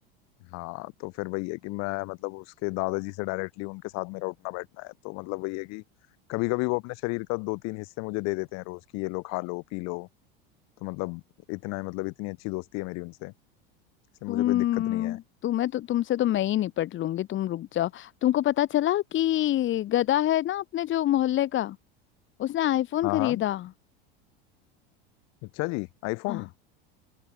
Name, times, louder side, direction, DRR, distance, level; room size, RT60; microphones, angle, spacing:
voice 1, 0.5-5.8 6.3-10.1 10.8-11.2 11.5-13.3 14.2-15.2 23.0-23.4 25.4-26.5, left 27 dB, 60° left, 6.6 m, -32 dB
voice 2, 14.3-21.8 22.4-23.7 26.3-26.4, left 13 dB, 40° left, 1.9 m, -26 dB
hypercardioid pair, 100°, 30 cm